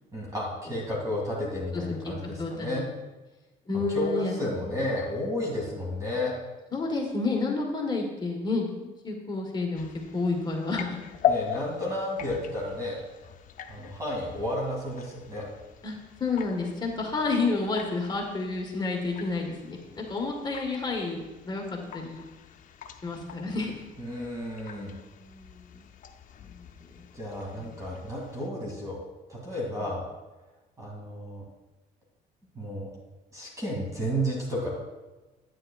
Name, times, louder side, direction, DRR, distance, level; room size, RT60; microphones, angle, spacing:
voice 1, 0.1-2.8 3.9-6.3 11.3-13.0 13.7-15.4 24.0-24.9 27.1-29.0 29.3-30.0 30.8-31.4 32.6-32.9 33.3-34.7, left 1 dB, 20° right, -4 dB, 2.3 m, -32 dB
voice 2, 1.7-2.8 3.7-4.3 4.6-4.7 6.7-9.9 10.1-11.0 15.8-22.2 23.0-23.8 25.2-25.9 26.4-26.9 27.5-27.7 29.8-29.9, left 3 dB, 25° left, 0 dB, 1.4 m, -30 dB
sound 1, 9.8-28.5, left 9 dB, 50° left, 0.6 m, -39 dB
9.7 x 9.0 x 2.4 m, 1.1 s
cardioid pair, 110°, 17 cm